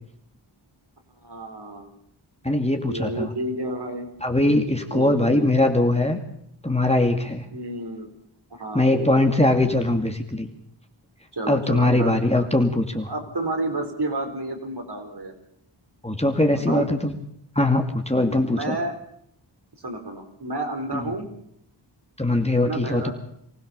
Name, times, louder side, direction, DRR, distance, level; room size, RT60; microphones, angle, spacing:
voice 1, 1.2-1.9 2.8-4.1 4.9-5.7 7.5-8.1 8.6-9.3 11.3-12.5 13.1-15.3 16.5-16.9 18.4-18.9 19.8-21.3 22.6-23.1, right 1 dB, 55° right, 4 dB, 4.2 m, -31 dB
voice 2, 2.4-3.3 4.2-6.2 6.6-7.5 8.7-10.5 11.5-13.1 16.0-17.2 17.6-18.8 20.9-21.0 22.2-23.1, left 1 dB, 15° left, 4 dB, 2.4 m, -21 dB
24.5 x 16.0 x 6.9 m, 0.71 s
cardioid pair, 50°, 48 cm